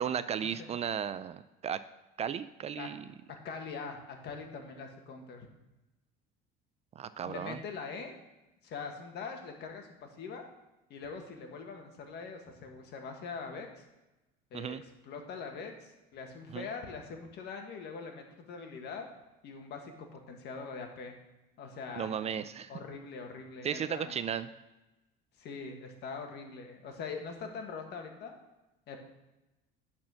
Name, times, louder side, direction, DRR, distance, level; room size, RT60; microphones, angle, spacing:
voice 1, 0.0-1.8 2.2-3.0 7.0-7.6 14.5-14.8 16.5-16.7 22.0-22.7 23.6-24.5, right 8 dB, 35° right, 13 dB, 0.4 m, -35 dB
voice 2, 3.4-5.5 7.3-8.2 8.6-10.5 10.9-13.8 14.5-19.0 19.4-21.2 21.6-22.4 22.7-24.1 25.4-28.4 28.9-29.0, left 5 dB, 55° left, 4 dB, 1.6 m, -43 dB
10.5 x 4.4 x 6.3 m, 1.0 s
supercardioid pair, 105°, 20 cm